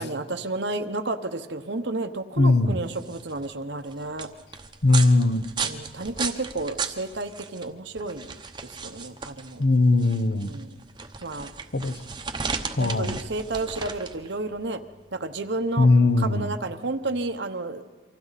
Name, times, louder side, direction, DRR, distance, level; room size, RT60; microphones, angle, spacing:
voice 1, 0.0-4.3 5.6-8.3 8.6-9.6 10.4-10.8 11.2-11.5 12.8-14.8 15.1-15.9 16.2-17.8, right 2 dB, 70° right, 8 dB, 1.0 m, -31 dB
voice 2, 2.4-2.7 4.8-5.4 9.6-10.5 11.7-11.9 12.8-13.1 15.8-16.5, left 2 dB, 55° left, 10 dB, 1.1 m, -19 dB
sound 1, 2.7-17.3, right 5 dB, 25° right, 0.9 m, -36 dB
28.0 x 25.0 x 4.1 m, 1.5 s
head